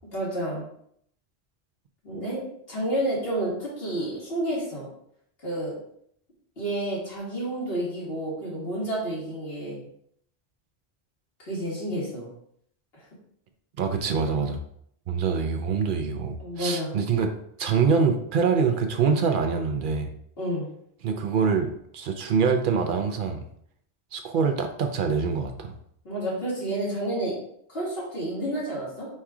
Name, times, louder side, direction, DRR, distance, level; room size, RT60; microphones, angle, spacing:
voice 1, 0.1-0.6 2.0-4.9 5.4-5.7 6.6-9.9 11.4-12.3 12.9-13.0 16.4-16.9 20.4-20.7 26.0-27.4 27.7-29.1, right 1 dB, 70° left, -6 dB, 2.1 m, -30 dB
voice 2, 13.8-14.6 15.1-17.3 17.6-20.1 21.0-23.4 24.1-25.7, right 5 dB, 60° right, 5 dB, 0.6 m, -25 dB
4.2 x 2.4 x 4.7 m, 0.69 s
omnidirectional pair, 1.1 m